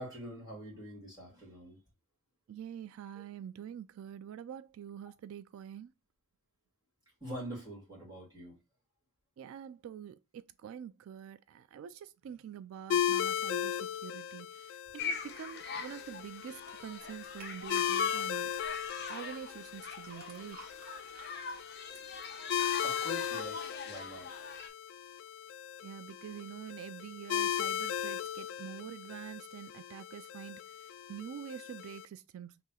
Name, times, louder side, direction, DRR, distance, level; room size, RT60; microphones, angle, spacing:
voice 1, 0.0-1.8 3.1-3.2 7.2-8.6 22.8-24.3, equal, 20° right, 2.1 m, -44 dB
voice 2, 2.5-5.9 9.4-18.5 19.1-20.6 25.8-32.5, right 9 dB, 85° right, 0.3 m, -46 dB
sound 1, 12.9-32.0, left 9 dB, 65° left, 0.3 m, -37 dB
sound 2, 15.0-24.7, left 5 dB, 50° left, 0.8 m, -42 dB
sound 3, 17.4-17.6 18.5-24.6 25.0-25.6 26.0-26.1, right 1 dB, 45° right, 1.2 m, -57 dB
3.1 x 2.9 x 3.7 m
head